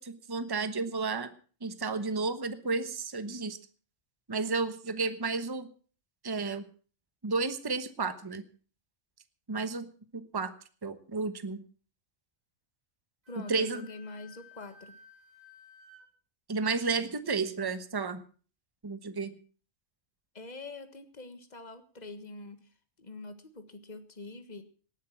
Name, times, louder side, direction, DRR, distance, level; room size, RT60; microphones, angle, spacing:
voice 1, 0.0-1.3 1.6-3.6 4.3-5.7 6.2-6.6 7.2-8.4 9.5-9.9 10.1-10.5 10.8-11.6 13.4-13.9 16.5-18.2 18.8-19.3, right 4 dB, 20° right, 11 dB, 1.0 m, -32 dB
Wind instrument woodwind instrument, 13.2-16.0, left 5 dB, 80° right, 4.5 m, -55 dB
voice 2, 13.3-15.0 20.3-22.7 23.0-24.6, left 3 dB, 35° left, 9 dB, 1.6 m, -45 dB
19.0 x 10.5 x 5.8 m, 0.41 s
omnidirectional pair, 1.4 m